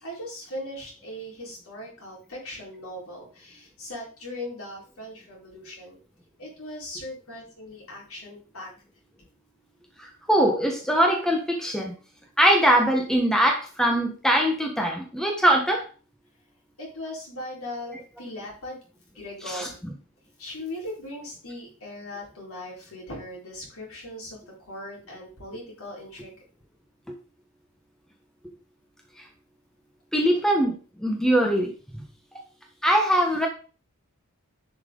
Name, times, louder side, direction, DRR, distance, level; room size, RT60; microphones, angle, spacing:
voice 1, 0.0-6.0 6.4-8.7 9.2-9.3 16.8-18.8 19.1-19.9 20.4-26.4, left 1 dB, 70° left, -3 dB, 4.3 m, -39 dB
voice 2, 10.0-11.9 12.4-15.8 19.5-19.7 30.1-30.7 31.0-31.7 32.8-33.5, right 1 dB, ahead, 1 dB, 1.3 m, -22 dB
10.5 x 5.8 x 3.9 m, 0.37 s
head